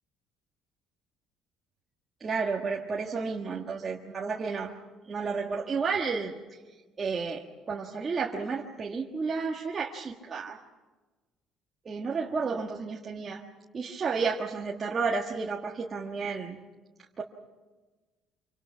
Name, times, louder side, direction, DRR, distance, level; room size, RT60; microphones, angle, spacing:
voice 1, 2.2-4.7 5.1-6.3 7.0-10.6 11.8-13.4 13.7-16.6 17.2-17.3, right 4 dB, 25° right, -2 dB, 1.5 m, -31 dB
27.0 x 25.0 x 5.8 m, 1.3 s
cardioid pair, 155°, 0 cm